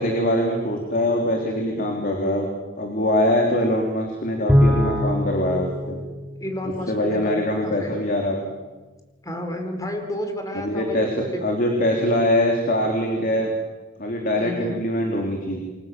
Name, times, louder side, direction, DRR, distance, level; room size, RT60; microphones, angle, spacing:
voice 1, 0.0-2.5 2.8-6.0 6.9-8.4 10.5-13.5 14.0-15.6, left 1 dB, 45° left, 1 dB, 3.6 m, -23 dB
Bowed string instrument, 4.5-7.1, left 1 dB, 5° right, 3.3 m, -22 dB
voice 2, 6.4-7.9 9.2-11.4 14.4-14.8, left 1 dB, 15° left, 5 dB, 4.4 m, -31 dB
29.0 x 23.5 x 7.6 m, 1.2 s
head